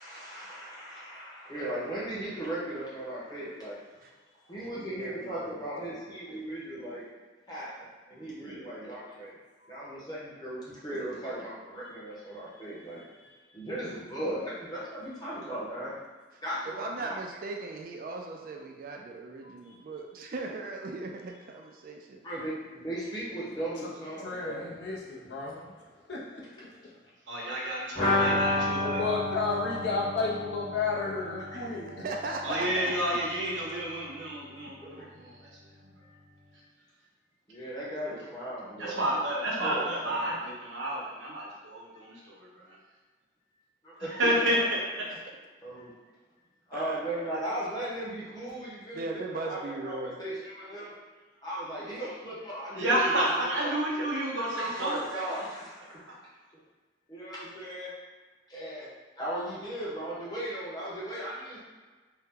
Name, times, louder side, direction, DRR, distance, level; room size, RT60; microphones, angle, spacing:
voice 1, 0.0-3.8 4.5-7.0 7.5-9.3 9.7-13.0 13.5-15.9 16.4-17.2 22.2-24.6 28.2-29.1 35.0-35.1 37.5-39.1 39.6-40.4 43.8-44.5 45.6-45.9 46.7-50.9 51.4-53.7 54.3-56.2 57.1-57.9 58.5-58.9 59.2-61.6, right 1 dB, 20° left, -7 dB, 0.8 m, -37 dB
voice 2, 4.6-6.4 16.7-22.2 32.0-32.9 45.1-45.2 46.7-47.3 48.9-50.2, right 3 dB, 50° right, 1 dB, 0.3 m, -38 dB
voice 3, 19.4-19.7 23.8-23.9 24.2-27.0 28.1-28.4 28.8-32.4, left 4 dB, 75° left, -4 dB, 0.7 m, -34 dB
voice 4, 27.3-29.0 32.4-35.1 38.8-42.4 44.2-45.1 52.7-55.2, right 1 dB, 90° right, -4 dB, 0.8 m, -30 dB
sound 1, 28.0-33.6 33.8-33.9 34.2-34.3, left 2 dB, 50° left, 1.3 m, -31 dB
2.7 x 2.2 x 3.6 m, 1.4 s
head